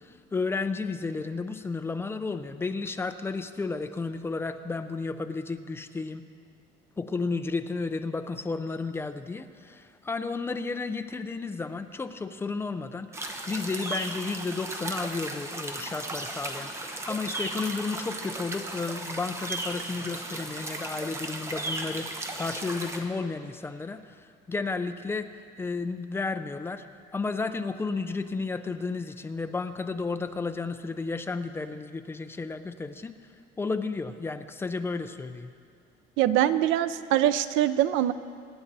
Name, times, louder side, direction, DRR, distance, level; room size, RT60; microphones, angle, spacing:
voice 1, 0.0-6.2 7.0-26.8 27.1-33.1 33.6-35.5, left 4 dB, 10° left, 9 dB, 0.4 m, -32 dB
sound 1, 13.1-23.0, right 2 dB, 15° right, 0.8 m, -35 dB
voice 2, 36.2-38.1, right 12 dB, 75° right, 13 dB, 0.6 m, -23 dB
24.0 x 10.0 x 4.0 m, 2.2 s
cardioid pair, 180°, 20 cm